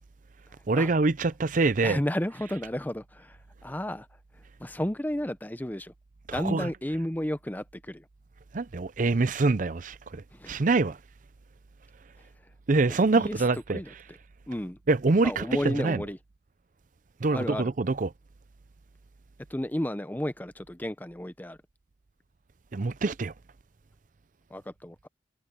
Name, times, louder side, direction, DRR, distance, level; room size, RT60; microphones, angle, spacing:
voice 1, 0.7-2.0 6.3-6.7 8.5-10.2 10.5-11.0 12.7-13.8 14.9-16.0 17.2-18.1 22.7-23.3, right 3 dB, 45° right, 0.6 m, -25 dB
voice 2, 1.8-4.1 4.3-5.9 6.3-8.0 10.3-10.7 12.9-13.4 13.7-14.2 14.5-14.8 15.2-16.2 17.3-17.7 19.5-21.6 24.5-25.1, left 1 dB, 10° left, 0.7 m, -33 dB
head